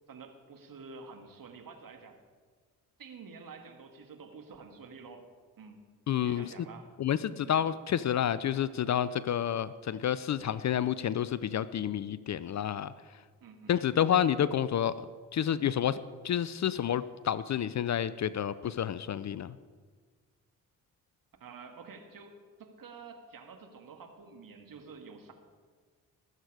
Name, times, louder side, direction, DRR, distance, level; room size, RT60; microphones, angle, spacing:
voice 1, 0.1-2.2 3.0-5.3 5.6-5.8 6.1-6.9 7.4-7.5 13.4-13.8 21.4-25.3, right 4 dB, 50° right, 5 dB, 2.1 m, -49 dB
voice 2, 6.1-6.5 7.0-12.9 13.7-14.9 15.3-16.0 16.2-19.5, left 9 dB, 40° left, 17 dB, 0.6 m, -29 dB
20.5 x 8.1 x 4.9 m, 1.5 s
hypercardioid pair, 40°, 42 cm